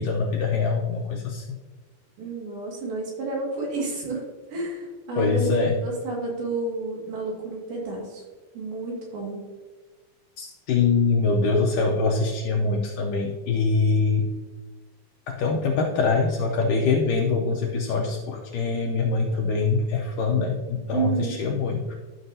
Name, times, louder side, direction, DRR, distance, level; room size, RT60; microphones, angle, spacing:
voice 1, 0.0-1.6 5.2-5.8 10.4-14.3 15.3-22.0, left 4 dB, 75° left, -1 dB, 2.1 m, -24 dB
voice 2, 2.2-4.2 4.5-8.2 8.5-9.5 20.9-21.4, right 2 dB, 80° right, -3 dB, 3.9 m, -30 dB
12.5 x 6.1 x 2.7 m, 1.3 s
omnidirectional pair, 4.2 m